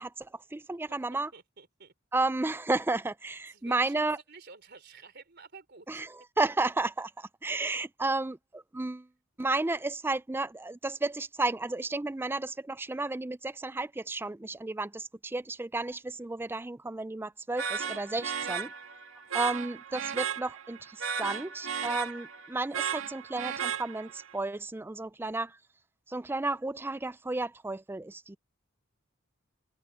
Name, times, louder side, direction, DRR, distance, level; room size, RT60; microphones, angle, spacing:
voice 1, 0.0-1.3 2.1-4.2 5.9-9.1 9.4-18.7 19.3-25.6 26.1-28.4, right 2 dB, 10° right, 0.3 m, -32 dB
voice 2, 0.9-1.9 3.5-6.0, right 4 dB, 50° right, 3.7 m, -51 dB
sound 1, 17.6-24.3, right 7 dB, 75° right, 1.6 m, -35 dB
head